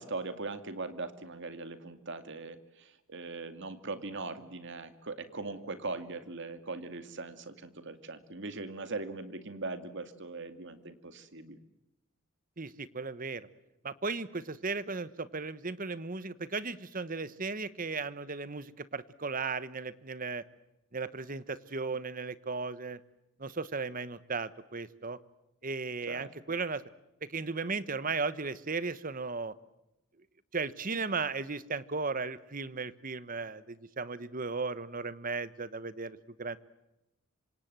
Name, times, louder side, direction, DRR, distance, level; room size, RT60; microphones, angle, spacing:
voice 1, 0.0-11.6 26.1-26.3, right 3 dB, 60° right, 10 dB, 2.4 m, -40 dB
voice 2, 12.6-13.5 13.8-20.4 20.9-23.0 23.4-25.2 25.6-26.8 27.3-29.5 30.5-36.6, right 4 dB, 40° right, 15 dB, 1.2 m, -36 dB
27.0 x 26.0 x 7.6 m, 0.89 s
head